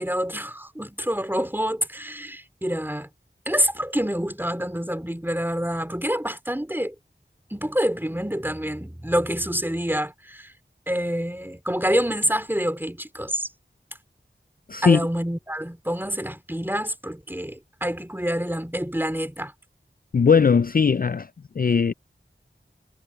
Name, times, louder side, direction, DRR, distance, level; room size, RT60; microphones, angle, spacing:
voice 1, 0.0-3.1 3.5-6.9 7.5-10.5 10.9-13.5 14.8-19.5, equal, 10° right, 3.0 m, -27 dB
voice 2, 14.7-15.0 20.1-21.3 21.6-21.9, left 6 dB, 45° left, 0.4 m, -19 dB
wide cardioid pair, 50°, 20 cm